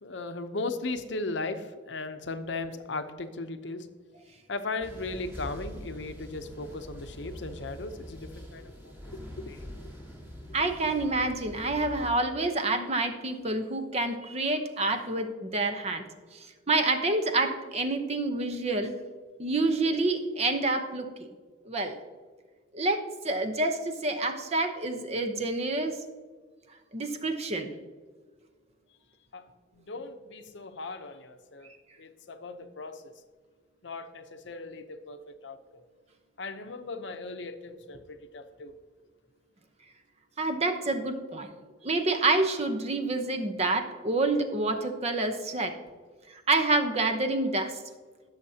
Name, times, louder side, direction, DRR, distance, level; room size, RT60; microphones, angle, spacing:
voice 1, 0.0-3.9 4.5-9.8 29.3-29.4 29.7-31.7 32.0-33.0 33.8-35.8 36.4-38.7, left 3 dB, 65° left, 9 dB, 0.7 m, -37 dB
sound 1, 4.8-12.1, equal, 10° right, 1.8 m, -44 dB
voice 2, 10.5-16.0 16.3-18.9 19.4-21.3 21.7-22.0 22.7-26.0 26.9-27.7 40.4-41.5 41.8-45.8 46.3-47.8, right 2 dB, 35° right, 7 dB, 0.8 m, -28 dB
17.5 x 6.5 x 2.8 m, 1.5 s
head